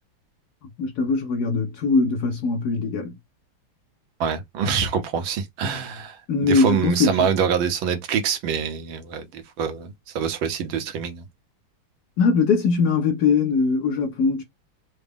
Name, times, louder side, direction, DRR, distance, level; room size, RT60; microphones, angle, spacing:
voice 1, 0.8-3.1 6.3-7.3 12.2-14.4, left 4 dB, 70° left, 0.9 m, -21 dB
voice 2, 4.2-6.2 6.4-11.2, right 7 dB, 75° right, 1.6 m, -25 dB
3.9 x 2.1 x 3.5 m
omnidirectional pair, 2.3 m